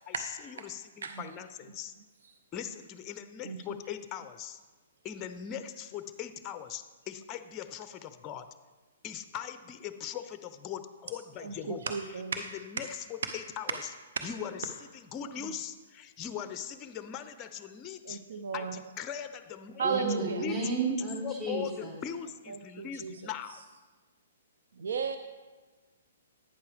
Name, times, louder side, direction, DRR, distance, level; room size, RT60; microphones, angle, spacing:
voice 1, 0.1-1.9 2.5-4.6 5.0-8.5 9.0-11.8 12.4-12.5 12.7-13.0 13.3-13.7 14.2-18.2 18.5-20.6 21.2-23.7, left 8 dB, 25° left, 11 dB, 0.6 m, -40 dB
voice 2, 11.4-12.5 15.4-15.5 18.0-18.8 19.8-20.4 22.5-23.3 24.7-25.2, right 6 dB, 70° right, 7 dB, 0.7 m, -34 dB
voice 3, 19.8-21.9, right 3 dB, 25° right, -4 dB, 3.4 m, -32 dB
11.5 x 8.9 x 3.5 m, 1.3 s
hypercardioid pair, 130°, 0 cm